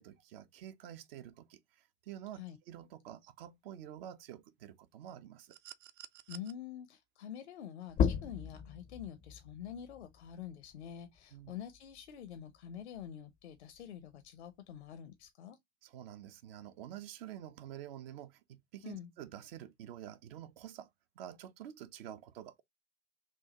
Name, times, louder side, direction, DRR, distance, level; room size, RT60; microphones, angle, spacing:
voice 1, 0.0-5.6 11.3-11.6 15.8-20.9 21.2-22.6, right 11 dB, 55° right, 0.8 m, -48 dB
sound 1, 5.5-6.5 8.0-8.2, right 14 dB, 35° right, 0.5 m, -51 dB
voice 2, 6.3-15.6 18.8-19.1, left 9 dB, 70° left, 0.8 m, -47 dB
sound 2, 7.9-13.1 13.5-15.3, left 7 dB, 25° left, 0.5 m, -38 dB
6.1 x 2.3 x 2.8 m
figure-of-eight pair, 85°, 34 cm